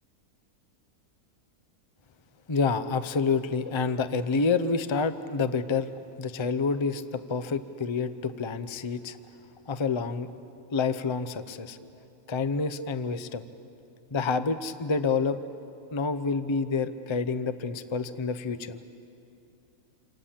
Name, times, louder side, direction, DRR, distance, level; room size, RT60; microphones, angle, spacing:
voice 1, 2.5-5.9 6.2-9.2 9.7-10.3 10.7-11.8 12.3-13.4 14.1-15.4 15.9-18.8, left 4 dB, 30° left, 12 dB, 0.5 m, -28 dB
28.0 x 27.5 x 7.5 m, 2.7 s
omnidirectional pair, 1.6 m